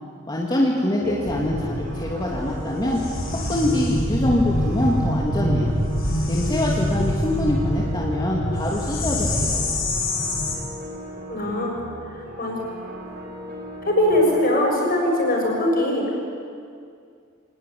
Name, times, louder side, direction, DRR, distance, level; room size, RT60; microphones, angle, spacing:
voice 1, 0.3-3.0 3.5-5.8 6.3-9.6, left 1 dB, 20° left, -3 dB, 2.5 m, -24 dB
sound 1, 1.0-14.4, right 1 dB, 50° right, 4.5 m, -38 dB
sound 2, 1.2-10.5, left 1 dB, 75° left, 6.9 m, -25 dB
voice 2, 11.3-11.8 12.4-12.6 13.8-16.0, left 1 dB, 45° left, 0 dB, 7.4 m, -21 dB
26.0 x 19.0 x 9.6 m, 2.3 s
head